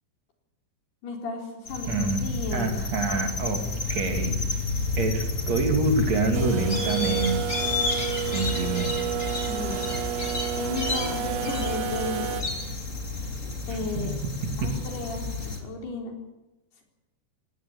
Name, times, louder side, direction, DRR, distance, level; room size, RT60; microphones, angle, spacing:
voice 1, 1.0-2.9 9.5-10.0 10.6-12.4 13.4-14.1 14.6-16.1, left 3 dB, 65° left, 1 dB, 5.9 m, -34 dB
sound 1, 1.6-15.6, left 3 dB, 20° left, 2.6 m, -30 dB
voice 2, 1.9-3.6 3.9-4.3 5.0-7.4 8.3-8.9 13.9-14.1, right 3 dB, 45° right, 4 dB, 3.1 m, -26 dB
sound 2, 6.3-12.4, right 9 dB, 75° right, 3.6 m, -31 dB
20.0 x 18.5 x 8.4 m, 1.1 s
omnidirectional pair, 5.2 m